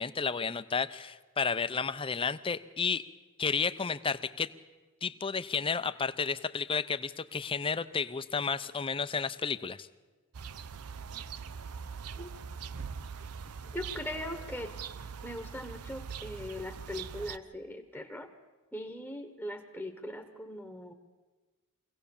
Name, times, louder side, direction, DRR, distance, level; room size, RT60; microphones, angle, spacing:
voice 1, 0.0-3.1 3.4-4.5 5.0-9.9, left 5 dB, 25° left, 13 dB, 0.6 m, -32 dB
sound 1, 10.3-17.4, right 6 dB, 85° right, 0.7 m, -42 dB
voice 2, 13.6-14.7 15.2-18.3 18.7-20.9, left 1 dB, 5° left, 5 dB, 1.1 m, -40 dB
23.5 x 17.0 x 7.1 m, 1.3 s
head